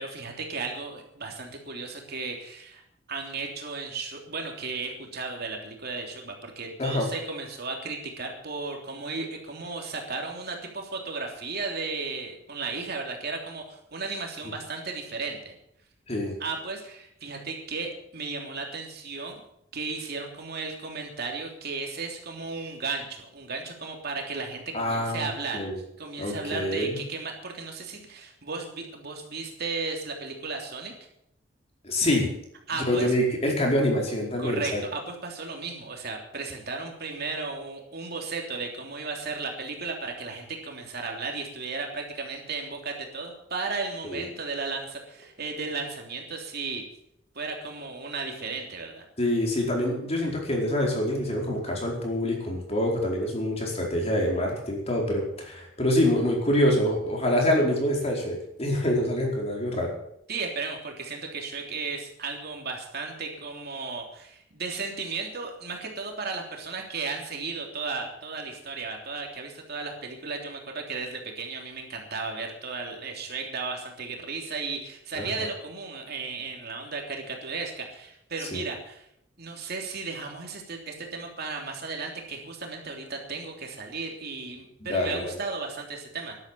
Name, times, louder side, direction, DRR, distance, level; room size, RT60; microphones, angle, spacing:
voice 1, 0.0-2.8 3.1-15.5 16.4-19.4 19.7-25.6 26.0-30.9 32.7-33.1 34.4-46.8 47.3-49.0 60.3-79.1 79.4-86.4, right 4 dB, 55° right, 2 dB, 3.3 m, -35 dB
voice 2, 24.7-25.8 26.2-27.0 31.8-32.3 32.9-34.8 44.1-44.2 49.2-59.9 75.1-75.5 78.5-78.6 84.8-85.4, left 1 dB, 30° left, -1 dB, 4.6 m, -26 dB
12.5 x 12.0 x 7.6 m, 0.75 s
head